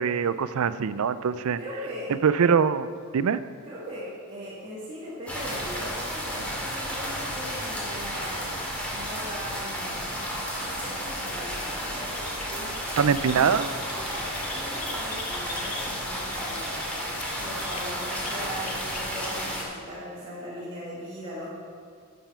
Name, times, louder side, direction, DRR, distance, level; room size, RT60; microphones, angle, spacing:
voice 1, 0.0-1.6 2.2-3.4 13.0-13.7, right 6 dB, 70° right, 15 dB, 0.4 m, -23 dB
voice 2, 1.6-2.1 3.6-8.4 8.8-10.1 10.6-13.6 13.9-16.8 17.4-21.5, equal, 25° right, -10 dB, 2.1 m, -39 dB
sound 1, 5.3-19.6, equal, 5° left, 2.1 m, -32 dB
sound 2, 10.0-10.3 10.7-11.1 11.4-11.8 12.1-12.3 12.7-19.3 19.6-19.7, left 3 dB, 90° left, 1.4 m, -41 dB
sound 3, 12.6-13.1 13.8-14.3 17.0-17.3 17.7-17.9, left 7 dB, 65° left, 1.0 m, -46 dB
11.5 x 7.0 x 5.6 m, 2.2 s
head